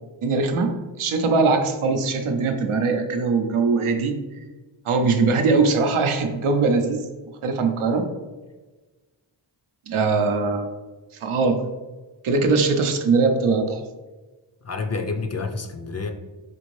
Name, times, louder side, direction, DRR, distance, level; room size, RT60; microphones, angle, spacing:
voice 1, 0.2-0.7 1.0-4.2 4.8-7.1 7.4-8.1 9.9-10.7 11.2-11.6 12.2-13.8, right 4 dB, 85° right, 5 dB, 0.6 m, -21 dB
voice 2, 14.6-16.1, left 4 dB, 35° left, 4 dB, 0.4 m, -28 dB
4.4 x 2.5 x 3.1 m, 1.2 s
cardioid pair, 45°, 48 cm